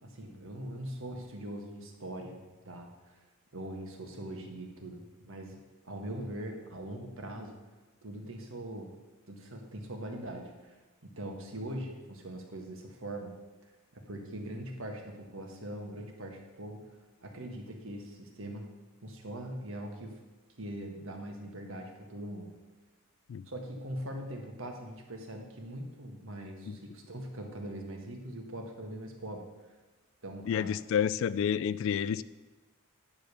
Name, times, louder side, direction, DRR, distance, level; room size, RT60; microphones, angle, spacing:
voice 1, 0.0-3.2 3.5-5.6 5.8-7.5 8.0-8.9 9.3-13.4 13.9-16.9 17.2-18.7 19.0-20.1 20.6-22.5 23.5-29.4 30.2-30.7, right 1 dB, 60° right, 2 dB, 1.6 m, -42 dB
voice 2, 30.5-32.2, left 8 dB, 60° left, 17 dB, 0.3 m, -29 dB
10.0 x 5.1 x 6.8 m, 1.2 s
head